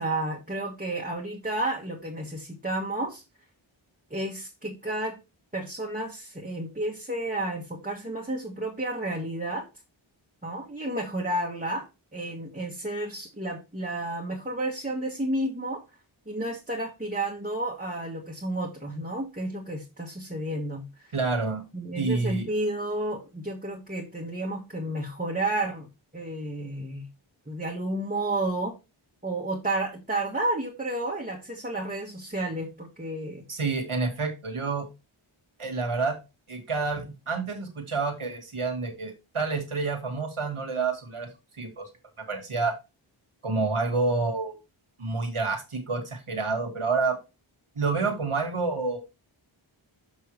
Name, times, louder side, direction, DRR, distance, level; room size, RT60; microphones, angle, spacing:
voice 1, 0.0-3.2 4.1-5.2 5.5-9.7 10.4-15.8 16.3-21.1 21.7-25.9 26.1-27.1 27.5-28.7 29.2-33.4, right 1 dB, 15° right, -1 dB, 1.5 m, -31 dB
voice 2, 21.1-21.6 21.9-22.5 33.5-34.9 35.6-36.2 36.5-41.3 41.5-41.9 42.3-42.8 43.4-44.6 45.0-47.2 47.8-49.0, right 4 dB, 80° right, 5 dB, 1.9 m, -28 dB
7.0 x 5.6 x 3.2 m, 0.26 s
wide cardioid pair, 40°, 49 cm